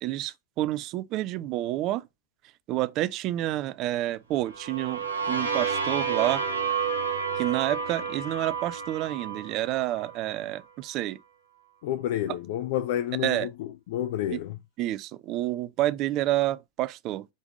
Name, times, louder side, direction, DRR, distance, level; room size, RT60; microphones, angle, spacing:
voice 1, 0.0-2.1 2.7-6.4 7.4-11.2 13.2-13.5 14.3-14.4 14.8-17.3, right 15 dB, 40° right, 0.4 m, -29 dB
sound 1, 4.5-10.3, right 6 dB, 85° right, 1.1 m, -30 dB
voice 2, 11.8-14.6, left 11 dB, 50° left, 0.4 m, -30 dB
5.2 x 3.5 x 5.1 m
figure-of-eight pair, 90°, 0 cm